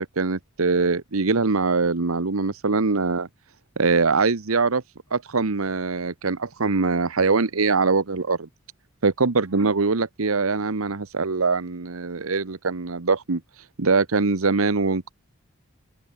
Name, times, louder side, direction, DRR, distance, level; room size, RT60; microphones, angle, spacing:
voice 1, 0.0-3.3 3.8-4.8 5.1-8.5 9.0-13.4 13.8-15.1, right 4 dB, 85° right, 1.1 m, -22 dB
open air
head